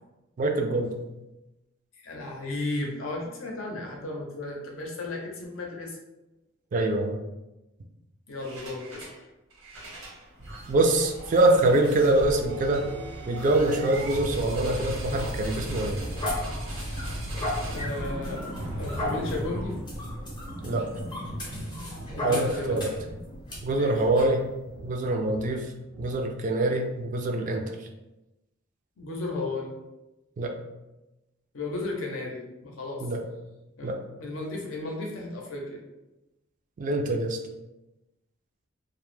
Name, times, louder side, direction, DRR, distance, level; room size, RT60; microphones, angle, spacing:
voice 1, 0.4-1.0 6.7-7.2 10.7-12.9 13.3-16.0 20.6-20.8 22.2-22.9 23.6-24.4 24.8-25.7 26.0-27.6 30.4-30.5 33.0-33.2 33.8-34.0 36.8-37.4, right 2 dB, 40° right, 3 dB, 0.3 m, -24 dB
voice 2, 2.0-6.0 8.3-9.1 17.7-18.4 18.8-19.8 22.2-22.8 23.7-24.0 29.0-29.7 31.5-33.1 33.8-33.9 34.2-35.8, left 2 dB, 80° left, -1 dB, 0.6 m, -34 dB
sound 1, 8.4-9.2 9.5-26.5, right 1 dB, 90° right, 0.9 m, -37 dB
sound 2, 14.4-23.1 23.5-23.6 24.1-24.3, left 1 dB, 25° left, 0.6 m, -36 dB
2.1 x 2.0 x 3.1 m, 1.0 s
head